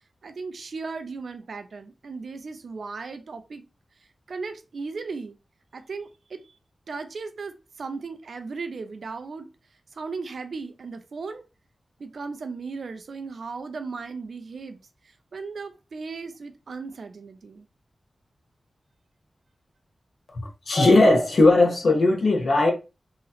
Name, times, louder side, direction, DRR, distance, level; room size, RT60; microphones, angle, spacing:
voice 1, 0.2-3.6 4.3-5.4 5.7-6.6 6.9-9.5 9.9-11.4 12.0-17.7, right 4 dB, 75° right, 0.5 m, -36 dB
voice 2, 20.7-22.7, left 2 dB, 65° left, 1.0 m, -18 dB
3.0 x 2.8 x 2.3 m
cardioid pair, 55°, 0 cm